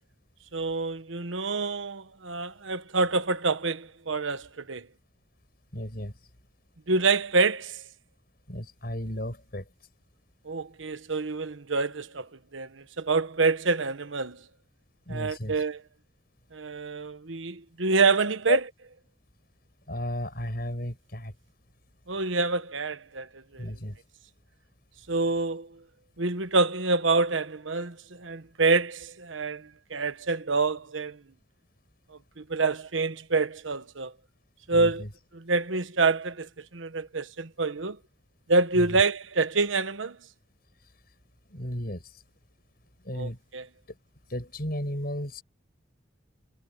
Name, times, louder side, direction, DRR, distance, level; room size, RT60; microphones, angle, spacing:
voice 1, 0.5-4.9 6.9-7.8 10.5-14.4 15.1-15.8 16.5-18.6 22.1-23.7 25.1-25.7 26.2-31.2 32.4-34.1 34.7-35.0 35.3-38.0 38.5-40.2 43.1-43.6, right 3 dB, 90° right, 1.2 m, -27 dB
voice 2, 5.7-6.1 8.5-9.7 15.1-15.6 18.5-18.6 19.9-21.3 23.6-24.0 34.7-35.1 38.7-39.0 41.5-42.2 43.0-43.4 44.3-45.4, left 1 dB, 50° left, 7.8 m, -33 dB
head